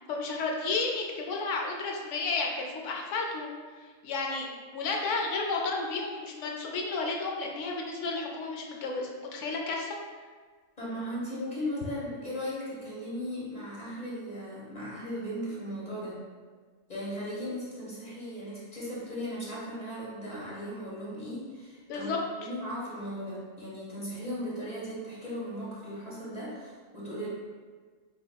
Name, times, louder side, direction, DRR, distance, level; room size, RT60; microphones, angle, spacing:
voice 1, 0.1-3.5 3.8-10.0 21.9-22.2, left 3 dB, 70° left, 0 dB, 0.8 m, -32 dB
voice 2, 10.8-16.2 16.9-27.3, equal, 35° left, -7 dB, 1.0 m, -37 dB
4.0 x 3.4 x 2.2 m, 1.5 s
omnidirectional pair, 1.4 m